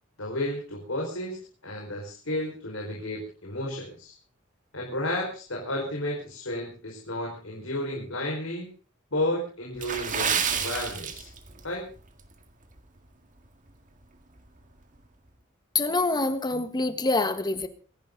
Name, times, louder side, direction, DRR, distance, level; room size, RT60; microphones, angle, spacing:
voice 1, 0.2-1.4 1.6-4.1 4.7-8.7 9.1-11.3 11.6-11.8, left 1 dB, 75° left, -1 dB, 5.1 m, -32 dB
Water / Splash splatter, 9.8-11.7 12.0-12.2 12.8-13.0 13.5-13.6, right 7 dB, 40° right, 1.9 m, -29 dB
voice 2, 15.7-17.7, left 2 dB, 20° left, 10 dB, 1.6 m, -26 dB
27.0 x 11.0 x 3.9 m, 0.37 s
head